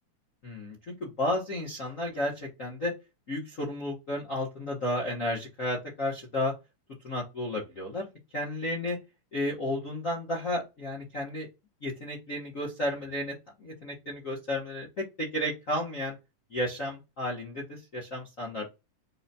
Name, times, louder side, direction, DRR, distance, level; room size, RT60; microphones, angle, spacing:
voice 1, 0.4-2.9 3.3-6.5 7.0-8.1 8.3-9.0 9.3-11.5 11.8-13.3 13.6-16.2 16.5-18.7, left 1 dB, 70° left, -6 dB, 0.7 m, -32 dB
4.7 x 2.2 x 4.1 m, 0.24 s
omnidirectional pair, 3.5 m